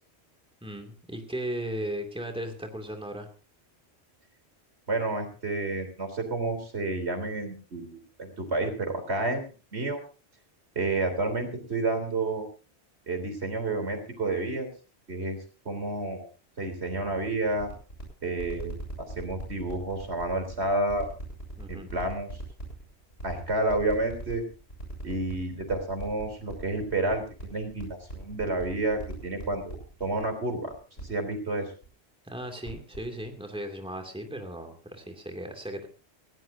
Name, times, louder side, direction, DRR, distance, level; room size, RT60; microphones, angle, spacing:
voice 1, 0.6-3.3 21.6-21.9 32.2-35.9, right 1 dB, 5° right, 4 dB, 2.5 m, -36 dB
voice 2, 4.9-10.0 10.8-12.5 13.1-14.7 15.1-15.4 15.7-16.3 16.6-17.7 18.2-21.1 21.7-22.3 23.2-24.4 25.0-30.7 31.1-31.7, right 2 dB, 80° right, 6 dB, 3.8 m, -30 dB
sound 1, 17.6-30.2 30.7-31.0 31.3-31.4 31.8-31.9 32.4-33.0 33.2-33.3, equal, 75° left, 7.3 m, -41 dB
19.5 x 16.5 x 2.7 m, 0.35 s
omnidirectional pair, 1.1 m